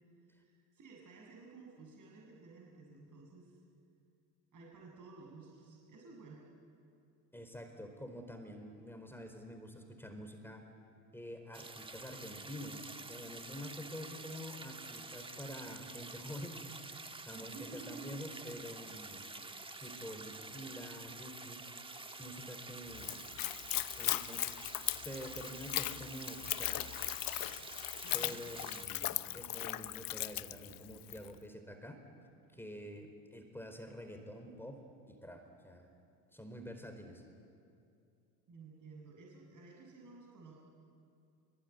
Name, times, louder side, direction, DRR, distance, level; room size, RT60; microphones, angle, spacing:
voice 1, 0.3-3.6 4.5-6.4 17.3-18.2 28.0-28.4 38.5-40.5, right 3 dB, 40° right, -1 dB, 7.3 m, -53 dB
voice 2, 7.3-10.6 11.1-19.3 19.8-21.6 22.1-23.2 24.0-24.5 24.9-26.9 27.5-27.7 28.1-32.0 32.5-34.8 35.1-35.9 36.3-37.2, equal, 5° left, 6 dB, 4.5 m, -47 dB
sound 1, 11.5-28.9, right 3 dB, 10° right, 1.5 m, -48 dB
Splash splatter / Trickle dribble, 22.9-31.3, left 15 dB, 45° left, 0.9 m, -38 dB
24.5 x 24.5 x 9.6 m, 2.5 s
hypercardioid pair, 85°, 49 cm